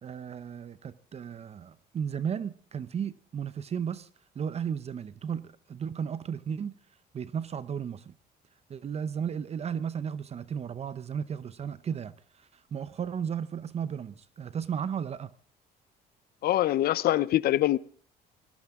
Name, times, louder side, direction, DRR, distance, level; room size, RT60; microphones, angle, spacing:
voice 1, 0.0-4.1 4.3-6.7 7.1-8.1 8.7-15.3, right 7 dB, 40° right, 0.7 m, -34 dB
voice 2, 16.4-17.8, left 14 dB, 65° left, 0.7 m, -24 dB
20.0 x 15.5 x 3.7 m
cardioid pair, 110°, 17 cm